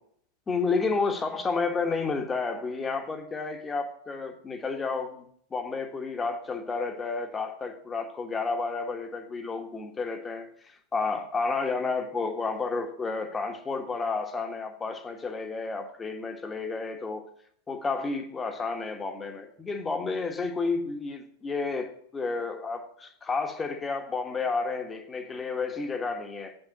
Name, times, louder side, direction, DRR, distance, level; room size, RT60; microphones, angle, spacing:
voice 1, 0.5-17.2 17.7-26.6, left 4 dB, 15° left, 5 dB, 1.6 m, -31 dB
8.2 x 7.9 x 8.9 m, 0.64 s
figure-of-eight pair, 90°, 0 cm